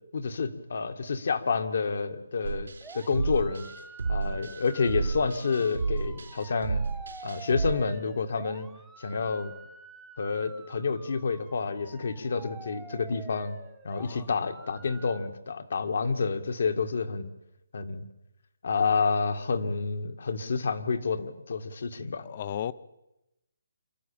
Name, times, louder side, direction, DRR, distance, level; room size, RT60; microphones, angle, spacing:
voice 1, 0.1-2.7 2.9-3.7 4.1-6.8 7.2-8.7 9.0-9.5 10.2-13.6 13.8-17.3 17.7-18.0 18.6-22.2, left 5 dB, 60° left, 2.0 m, -29 dB
sound 1, 2.4-7.7, right 4 dB, 75° right, 4.4 m, -32 dB
sound 2, 2.8-15.3, right 3 dB, 5° right, 1.1 m, -48 dB
voice 2, 14.0-14.3 22.2-22.7, left 10 dB, 35° left, 0.8 m, -36 dB
26.5 x 12.0 x 8.8 m
hypercardioid pair, 160°, 0 cm